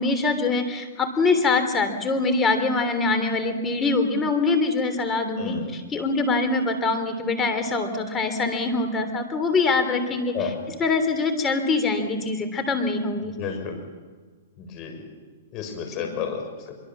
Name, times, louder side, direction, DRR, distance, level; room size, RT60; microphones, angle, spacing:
voice 1, 0.0-10.5 10.8-13.3 16.0-16.2, left 3 dB, 15° left, 7 dB, 3.1 m, -24 dB
voice 2, 5.4-5.7 10.3-10.5 13.3-13.8 14.6-15.0 15.5-16.7, left 7 dB, 35° left, 5 dB, 6.3 m, -31 dB
25.0 x 23.5 x 7.3 m, 1.4 s
hypercardioid pair, 140°, 0 cm